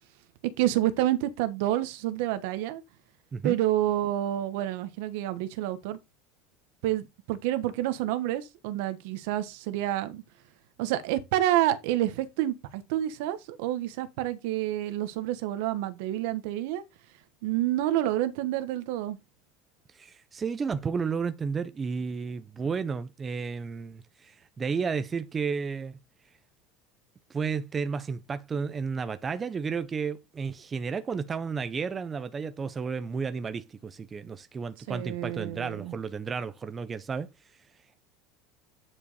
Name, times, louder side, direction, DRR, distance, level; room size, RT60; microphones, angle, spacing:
voice 1, 0.6-2.8 3.4-6.0 6.8-10.2 10.8-16.8 17.4-19.2 34.9-35.9, right 13 dB, 65° right, 1.3 m, -28 dB
voice 2, 19.9-26.0 27.3-37.3, right 5 dB, 15° right, 0.6 m, -32 dB
9.7 x 5.1 x 4.2 m
cardioid pair, 170°, 0 cm